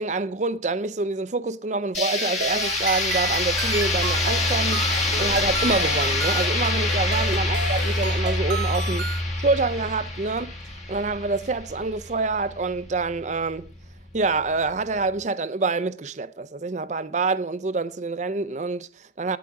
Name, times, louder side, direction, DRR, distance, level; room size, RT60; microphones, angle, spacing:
voice 1, 0.0-4.9 5.2-9.1 9.4-10.5 10.9-13.7 14.1-19.4, right 3 dB, 40° right, 0.5 m, -26 dB
sound 1, 1.9-11.7, left 3 dB, 40° left, 1.5 m, -27 dB
sound 2, 2.0-9.2, right 4 dB, 80° right, 1.2 m, -32 dB
sound 3, 2.4-15.2, equal, 90° left, 4.2 m, -30 dB
12.5 x 9.6 x 3.6 m
head